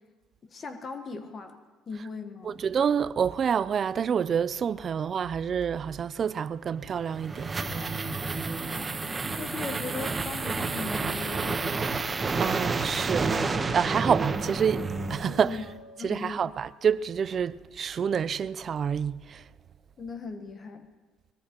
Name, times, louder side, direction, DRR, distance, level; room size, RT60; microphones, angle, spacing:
voice 1, 0.4-1.6 1.9-2.6 8.7-11.6 15.3-15.6 16.0-16.5 20.0-20.9, left 4 dB, 40° left, 1.2 m, -38 dB
voice 2, 2.4-7.5 12.4-13.3 13.7-15.6 16.0-19.4, right 7 dB, 45° right, 0.4 m, -28 dB
sound 1, 6.8-15.7, right 3 dB, 25° right, 1.0 m, -30 dB
sound 2, 10.6-16.8, left 1 dB, 85° left, 3.2 m, -51 dB
22.5 x 20.5 x 3.0 m
supercardioid pair, 85°, 0 cm